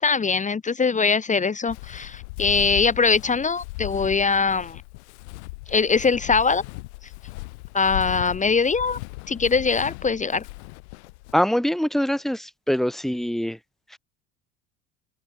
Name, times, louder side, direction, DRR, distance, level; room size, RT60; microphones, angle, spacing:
voice 1, 0.0-4.8 5.7-6.6 7.7-9.0 9.3-10.4, left 5 dB, 20° left, 1.7 m, -22 dB
Walk footsteps, 1.7-11.3, left 25 dB, 65° left, 1.6 m, -37 dB
voice 2, 11.3-13.6, equal, ahead, 1.5 m, -23 dB
figure-of-eight pair, 70°, 37 cm